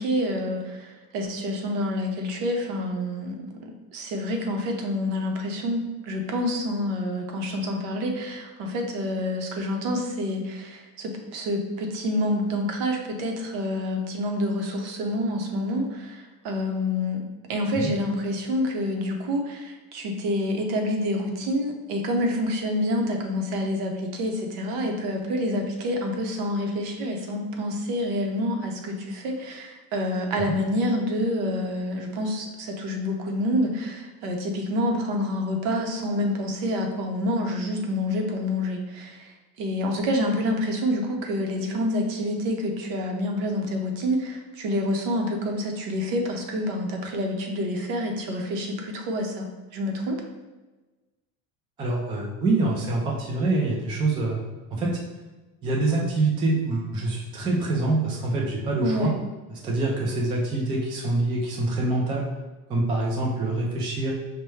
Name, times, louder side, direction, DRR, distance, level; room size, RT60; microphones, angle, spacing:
voice 1, 0.0-17.2 17.5-49.5 49.7-50.2 58.8-59.1, left 1 dB, 60° right, 2 dB, 0.8 m, -27 dB
voice 2, 51.8-54.4 54.7-54.9 55.6-59.1 59.5-62.3 62.7-64.1, right 2 dB, 15° right, -3 dB, 0.3 m, -25 dB
5.5 x 2.2 x 3.2 m, 1.2 s
cardioid pair, 160°, 36 cm